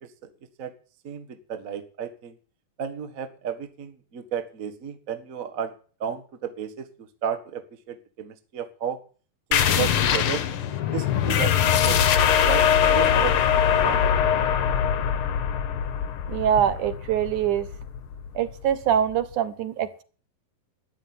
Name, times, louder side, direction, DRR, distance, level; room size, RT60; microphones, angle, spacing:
voice 1, 1.0-2.3 2.8-5.7 6.0-7.6 7.9-9.0 9.5-10.4 10.9-12.0 12.5-14.5, right 8 dB, 45° right, 7 dB, 1.0 m, -33 dB
sound 1, 9.5-18.7, left 8 dB, 80° left, 1.2 m, -22 dB
voice 2, 16.3-17.7 18.4-20.0, right 9 dB, 65° right, 11 dB, 2.5 m, -24 dB
13.5 x 10.5 x 9.6 m, 0.40 s
omnidirectional pair, 4.2 m